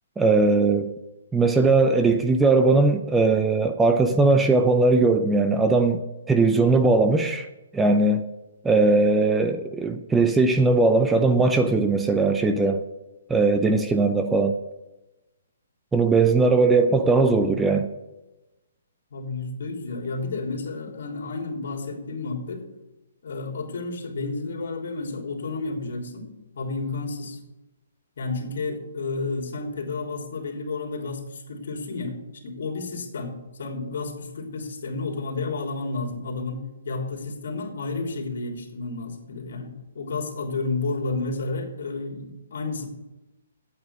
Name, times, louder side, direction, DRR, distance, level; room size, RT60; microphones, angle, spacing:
voice 1, 0.2-0.9 1.3-7.5 7.7-8.2 8.6-12.8 13.3-14.6 15.9-17.9, right 3 dB, 5° right, 7 dB, 0.6 m, -19 dB
voice 2, 19.1-22.6 23.2-26.3 26.5-27.4 28.2-32.2 32.4-42.9, left 3 dB, 65° left, 1 dB, 3.4 m, -31 dB
8.9 x 8.7 x 8.2 m, 1.0 s
hypercardioid pair, 155°, 0 cm